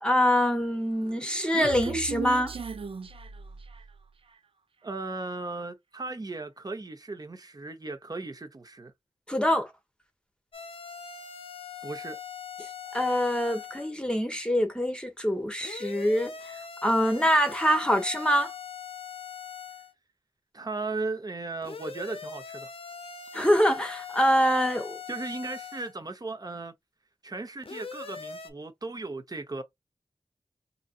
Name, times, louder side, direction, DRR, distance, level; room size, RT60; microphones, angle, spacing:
voice 1, 0.0-2.5 9.3-9.7 12.9-16.3 16.8-18.5 23.3-25.0, equal, 10° left, 0.9 m, -24 dB
Human voice, 1.0-4.0, right 5 dB, 65° right, 0.5 m, -37 dB
voice 2, 4.8-8.9 11.8-12.2 20.5-22.7 25.1-26.7 27.2-29.6, right 3 dB, 40° right, 0.8 m, -36 dB
sound 1, 10.5-13.9 15.6-19.9 21.6-25.9 27.6-28.5, left 6 dB, 70° left, 0.7 m, -41 dB
4.0 x 2.7 x 2.5 m
wide cardioid pair, 75°, 10 cm